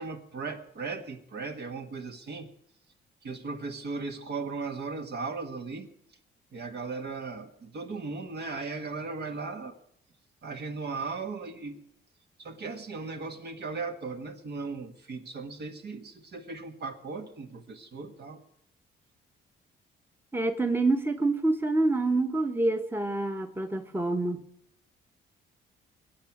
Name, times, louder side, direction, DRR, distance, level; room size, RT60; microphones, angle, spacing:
voice 1, 0.0-2.5 3.2-5.9 6.5-9.8 10.4-11.8 12.4-18.4, right 4 dB, 55° right, 6 dB, 1.7 m, -37 dB
voice 2, 20.3-24.5, right 2 dB, 10° right, 7 dB, 1.1 m, -27 dB
21.0 x 8.5 x 5.9 m, 0.75 s
cardioid pair, 90°, 20 cm